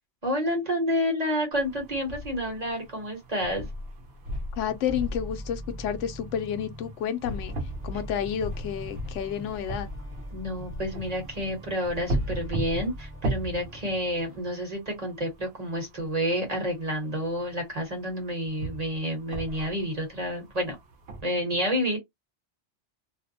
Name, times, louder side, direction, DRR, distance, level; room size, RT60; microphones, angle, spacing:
voice 1, 0.2-3.7 10.3-20.7 21.2-22.0, equal, 35° right, 1.0 m, -29 dB
sound 1, 1.5-21.2, right 1 dB, 65° right, 0.8 m, -38 dB
sound 2, 2.6-2.9 4.9-6.9 7.3-14.4, equal, 10° right, 0.9 m, -42 dB
voice 2, 4.5-7.5 7.8-9.9, left 9 dB, 85° left, 0.9 m, -30 dB
2.5 x 2.1 x 2.6 m
omnidirectional pair, 1.2 m